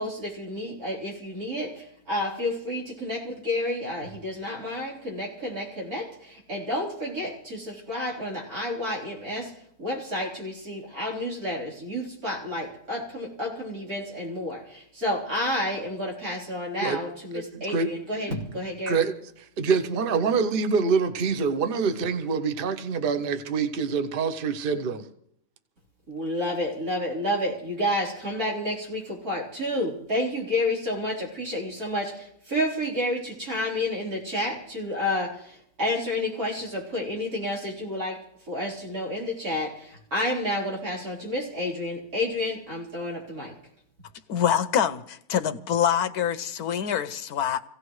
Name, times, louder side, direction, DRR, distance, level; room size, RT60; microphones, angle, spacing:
voice 1, 0.0-9.5 9.8-19.0 26.1-43.6, left 1 dB, 85° right, 4.6 m, -30 dB
voice 2, 17.3-17.9 18.3-18.4 18.9-19.1 19.6-25.1, right 5 dB, 45° right, 1.0 m, -25 dB
voice 3, 44.3-47.6, left 9 dB, 90° left, 1.3 m, -25 dB
25.5 x 16.5 x 3.2 m
omnidirectional pair, 1.5 m